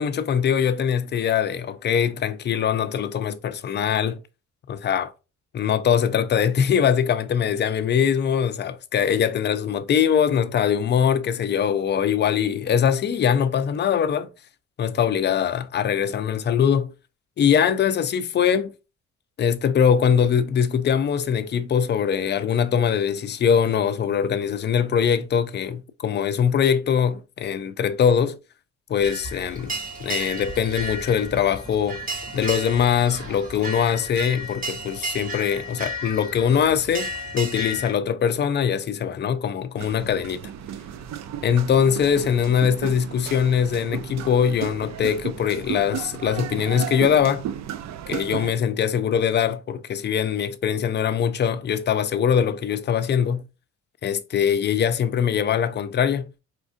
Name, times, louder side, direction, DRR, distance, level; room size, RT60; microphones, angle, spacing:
voice 1, 0.0-4.2 4.7-5.1 5.5-14.3 14.8-16.9 17.4-18.7 19.4-28.4 28.9-29.7 30.0-32.0 32.3-40.4 41.4-47.4 48.1-53.4 54.0-56.3, left 8 dB, 35° left, 0.4 m, -22 dB
sound 1, 29.0-37.9, right 1 dB, 30° right, 1.1 m, -33 dB
sound 2, 39.8-48.5, right 9 dB, 65° right, 0.5 m, -34 dB
4.4 x 2.4 x 2.4 m
cardioid pair, 90°, 30 cm